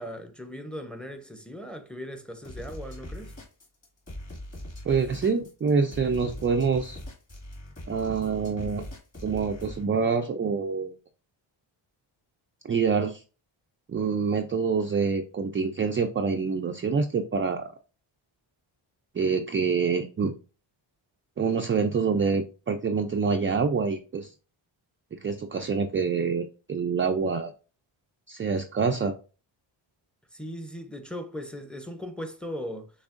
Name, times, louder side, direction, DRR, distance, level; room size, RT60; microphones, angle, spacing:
voice 1, 0.0-3.3 30.3-32.9, equal, ahead, 0.7 m, -38 dB
sound 1, 2.4-9.8, left 1 dB, 30° left, 2.0 m, -41 dB
voice 2, 4.8-7.0 7.9-8.8 9.2-11.0 12.6-13.2 13.9-17.7 19.1-20.3 21.4-24.3 25.2-27.5 28.3-29.1, right 5 dB, 30° right, 0.3 m, -26 dB
6.2 x 3.4 x 2.5 m
wide cardioid pair, 110°, 49 cm